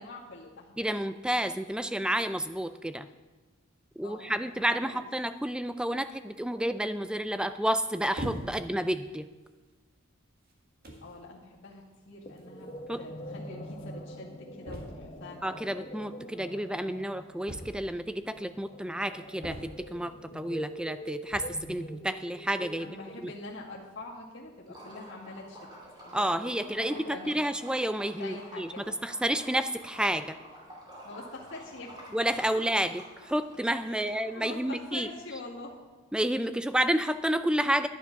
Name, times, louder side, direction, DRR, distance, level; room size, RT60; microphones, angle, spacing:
voice 1, 0.0-0.8 4.0-5.0 11.0-15.4 22.7-27.4 28.2-29.0 31.0-32.2 33.9-35.8, left 2 dB, 55° left, -4 dB, 2.0 m, -45 dB
voice 2, 0.8-3.1 4.0-9.3 12.9-13.0 15.4-23.0 23.2-23.3 26.1-30.4 32.1-35.1 36.1-37.9, right 1 dB, 5° right, 11 dB, 0.3 m, -30 dB
sound 1, 8.2-8.8 9.5-9.7 10.5-10.6 10.8-11.2 12.4-12.5 12.7-12.8 13.0-13.1 14.6-15.2 17.5-18.1 19.4-20.1 21.2-21.7, right 1 dB, 45° right, 1.7 m, -40 dB
sound 2, 12.2-23.6, equal, 25° left, 1.0 m, -44 dB
Liquid, 24.7-34.6, equal, 20° right, 2.8 m, -49 dB
11.0 x 10.0 x 5.9 m, 1.3 s
head